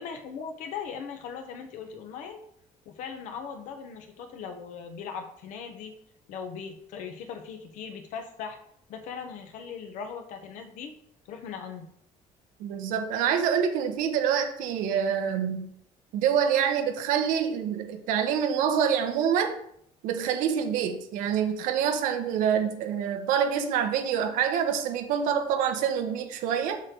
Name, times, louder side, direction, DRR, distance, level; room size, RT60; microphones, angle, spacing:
voice 1, 0.0-2.4 2.8-5.9 6.3-8.6 8.9-10.9 11.2-11.9, left 6 dB, 70° left, 5 dB, 1.3 m, -39 dB
voice 2, 12.6-15.7 16.1-19.5 20.0-26.8, right 8 dB, 90° right, 6 dB, 1.2 m, -26 dB
7.3 x 6.6 x 3.9 m, 0.67 s
cardioid pair, 165°, 13 cm